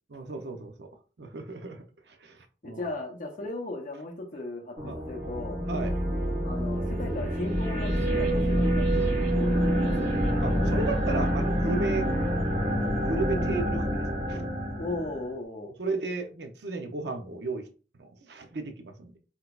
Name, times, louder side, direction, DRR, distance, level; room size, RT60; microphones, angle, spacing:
voice 1, 0.1-0.9 1.2-2.9 4.8-5.0 5.7-5.9 10.4-12.1 13.0-14.4 15.8-17.7 18.0-19.2, right 3 dB, 70° right, 0.6 m, -34 dB
voice 2, 2.6-5.6 6.4-10.3 14.8-15.7, left 2 dB, 45° left, 0.6 m, -37 dB
sound 1, 4.8-15.3, equal, 40° right, 1.0 m, -27 dB
3.8 x 2.8 x 2.3 m
head